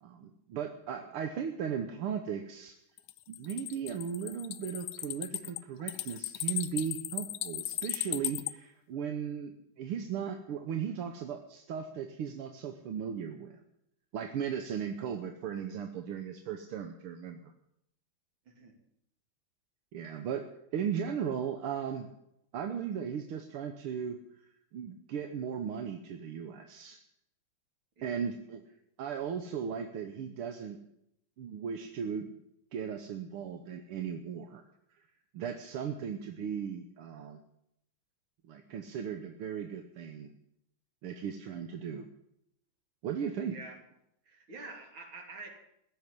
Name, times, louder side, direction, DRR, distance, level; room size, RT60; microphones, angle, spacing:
voice 1, 0.0-2.8 3.3-13.6 14.1-17.5 19.9-20.5 20.7-22.1 22.5-24.2 24.7-27.0 28.0-28.7 29.0-30.8 31.4-32.3 32.7-34.6 35.3-37.4 38.5-40.3 41.0-42.1 43.0-43.6, right 7 dB, 85° right, 6 dB, 1.9 m, -37 dB
sound 1, 3.0-8.5, left 14 dB, 75° left, 1.5 m, -36 dB
voice 2, 44.3-45.5, right 3 dB, 65° right, 3 dB, 3.5 m, -47 dB
15.5 x 7.7 x 10.0 m, 0.76 s
omnidirectional pair, 2.4 m